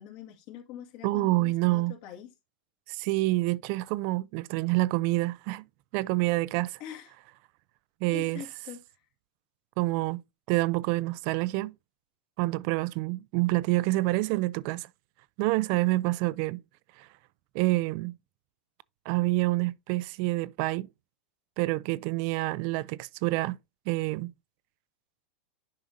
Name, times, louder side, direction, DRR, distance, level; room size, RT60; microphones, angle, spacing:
voice 1, 0.0-2.3 6.8-7.1 8.1-8.8, left 10 dB, 55° left, 1.9 m, -44 dB
voice 2, 1.0-2.0 2.9-5.6 5.9-6.8 8.0-8.4 9.8-10.2 10.5-11.7 12.4-14.9 15.4-16.6 17.0-17.1 17.5-18.2 19.1-20.9 21.6-23.6 23.9-24.3, right 20 dB, 50° right, 0.4 m, -27 dB
10.5 x 4.9 x 2.6 m
hypercardioid pair, 110°, 5 cm